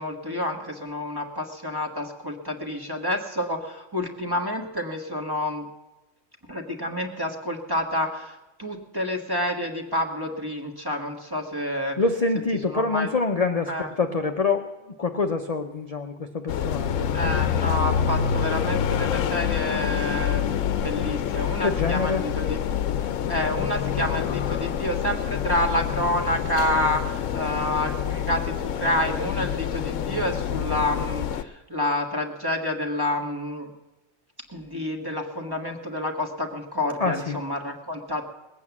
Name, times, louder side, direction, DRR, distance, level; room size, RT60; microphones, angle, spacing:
voice 1, 0.0-5.7 6.5-12.0 12.7-13.1 13.7-13.9 17.1-22.7 23.0-33.7 34.5-38.2, left 1 dB, 20° right, 2 dB, 1.5 m, -29 dB
voice 2, 12.0-14.7 15.0-17.1 21.6-22.2 37.0-37.4, left 4 dB, 40° left, 5 dB, 0.7 m, -25 dB
sound 1, 16.5-31.4, left 8 dB, 80° left, 1.0 m, -27 dB
20.0 x 8.6 x 7.2 m, 1.1 s
omnidirectional pair, 1.3 m